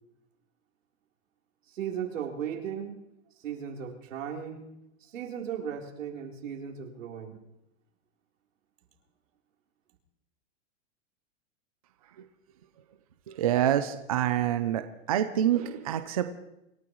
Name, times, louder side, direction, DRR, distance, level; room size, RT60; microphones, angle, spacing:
voice 1, 1.7-2.9 3.4-4.6 5.0-7.4, right 8 dB, 80° right, 0 dB, 3.7 m, -36 dB
voice 2, 13.3-16.3, right 11 dB, 30° right, 9 dB, 0.5 m, -27 dB
26.5 x 14.5 x 3.1 m, 0.87 s
supercardioid pair, 180°, 38 cm